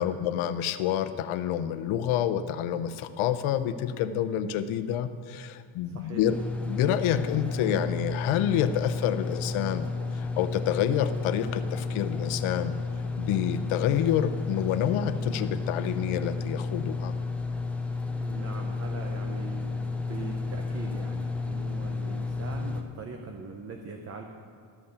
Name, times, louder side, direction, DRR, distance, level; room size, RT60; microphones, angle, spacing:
voice 1, 0.0-6.4 6.7-9.9 10.1-12.8 13.2-17.1, left 10 dB, 80° left, 11 dB, 0.7 m, -28 dB
voice 2, 5.8-6.2 18.2-19.8 20.1-24.2, right 4 dB, 30° right, 3 dB, 0.7 m, -41 dB
sound 1, 6.2-22.8, left 3 dB, 5° left, 0.3 m, -32 dB
13.0 x 5.6 x 6.7 m, 2.4 s
cardioid pair, 170°, 48 cm